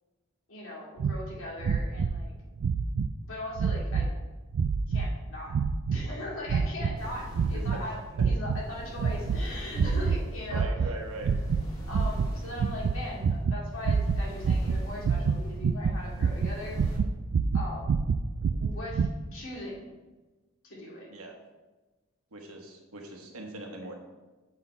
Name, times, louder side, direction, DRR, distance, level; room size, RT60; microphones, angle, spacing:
voice 1, 0.5-2.3 3.2-4.1 4.9-5.5 5.9-10.7 11.9-16.8 17.5-17.9 18.6-19.9 20.6-21.1, left 1 dB, 70° left, -4 dB, 2.2 m, -39 dB
sound 1, 1.0-1.2 1.6-2.2 2.6-3.1 3.6-4.1 4.5-5.1 5.5-6.1 6.5-7.0 7.3-7.8 8.2-8.6 9.0-9.4 9.7-10.2 10.5-10.9 11.2-11.7 11.9-19.1, right 5 dB, 65° right, 0.3 m, -27 dB
sound 2, 7.0-17.0, equal, 25° left, 2.0 m, -44 dB
voice 2, 10.5-11.3 21.1-21.3 22.3-24.0, right 2 dB, 85° right, 2 dB, 1.2 m, -40 dB
7.2 x 4.3 x 4.4 m, 1.2 s
head